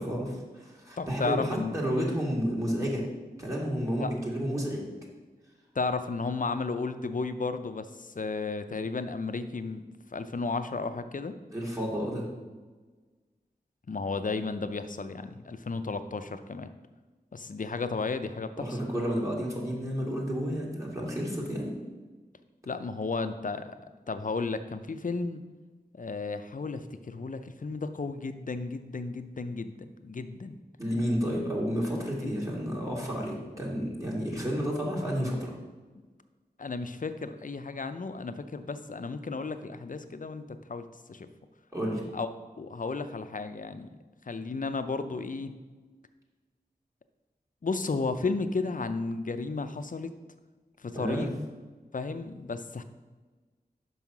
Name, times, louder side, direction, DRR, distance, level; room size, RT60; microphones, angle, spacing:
voice 1, 0.0-3.0 3.4-4.9 11.5-12.2 18.6-21.7 30.8-35.5 41.7-42.0 50.9-51.3, equal, 20° right, -3 dB, 2.1 m, -31 dB
voice 2, 1.0-1.8 4.0-4.1 5.7-9.8 10.1-11.4 13.9-16.7 17.3-18.8 22.7-23.7 24.1-25.4 25.9-30.6 32.2-32.4 36.6-40.4 40.7-41.3 42.1-42.3 42.6-43.9 44.3-45.5 47.6-50.1 50.8-51.3 51.9-52.8, left 4 dB, 55° left, 10 dB, 0.5 m, -33 dB
5.6 x 5.5 x 6.0 m, 1.3 s
wide cardioid pair, 50°, 16 cm